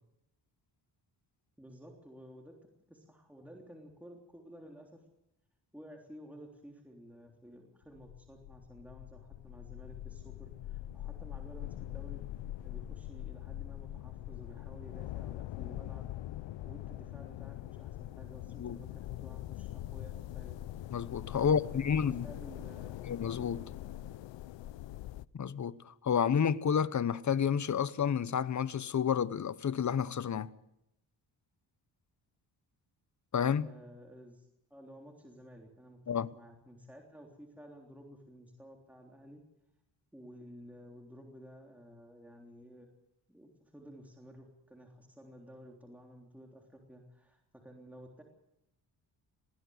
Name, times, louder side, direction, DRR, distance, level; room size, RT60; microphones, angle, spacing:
voice 1, 1.6-2.5 2.9-5.0 5.7-12.2 12.6-16.0 16.6-20.6 21.4-23.0 33.6-39.4 40.1-42.9 43.3-48.2, equal, 5° right, 3.5 m, -53 dB
sound 1, 7.8-25.2, left 14 dB, 80° left, 0.7 m, -43 dB
voice 2, 20.9-22.2 23.1-23.6 25.3-30.5 33.3-33.7 36.1-36.3, left 7 dB, 40° left, 1.0 m, -30 dB
21.5 x 16.0 x 7.9 m
cardioid pair, 90°, 44 cm